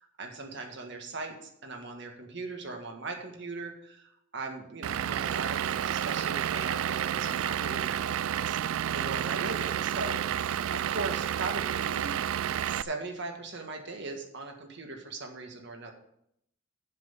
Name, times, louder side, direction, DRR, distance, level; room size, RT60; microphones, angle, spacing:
voice 1, 0.2-10.4 10.7-12.2 12.6-15.9, right 3 dB, 60° right, 3 dB, 1.8 m, -39 dB
Vehicle / Engine, 4.8-12.8, right 10 dB, 80° right, 0.3 m, -30 dB
7.8 x 7.5 x 6.9 m, 0.75 s
head